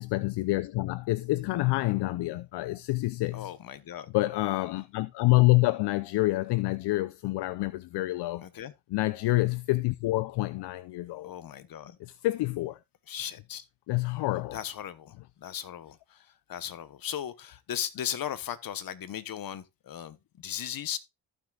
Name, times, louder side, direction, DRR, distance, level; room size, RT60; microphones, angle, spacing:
voice 1, 0.0-3.5 4.1-8.4 8.9-11.3 12.0-12.8 13.9-14.6, left 20 dB, 75° left, 0.6 m, -27 dB
voice 2, 3.3-4.1 8.4-8.7 11.2-12.0 13.1-13.7 14.5-21.0, left 10 dB, 55° left, 1.1 m, -37 dB
14.5 x 6.2 x 2.3 m
cardioid pair, 75°, 41 cm